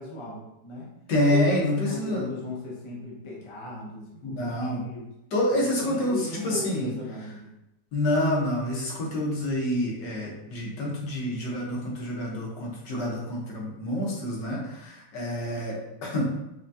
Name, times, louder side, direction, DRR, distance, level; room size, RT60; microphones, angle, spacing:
voice 1, 0.0-0.9 1.3-5.1 5.8-7.5, left 2 dB, 35° left, -4 dB, 0.5 m, -37 dB
voice 2, 1.1-2.3 4.2-4.8 5.3-7.0 7.9-16.2, left 1 dB, 80° left, -3 dB, 1.7 m, -27 dB
5.8 x 2.3 x 2.7 m, 0.87 s
omnidirectional pair, 1.9 m